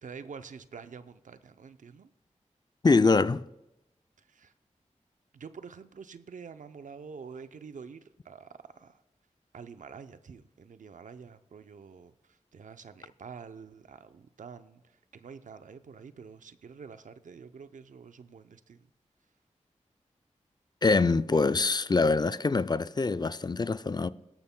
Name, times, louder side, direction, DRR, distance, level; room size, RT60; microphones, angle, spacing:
voice 1, 0.0-2.1 4.2-4.5 5.3-9.0 9.5-18.9, right 6 dB, 85° right, 0.6 m, -47 dB
voice 2, 2.8-3.4 20.8-24.1, left 3 dB, 35° left, 0.4 m, -24 dB
17.0 x 13.0 x 2.2 m
cardioid pair, 45°, 13 cm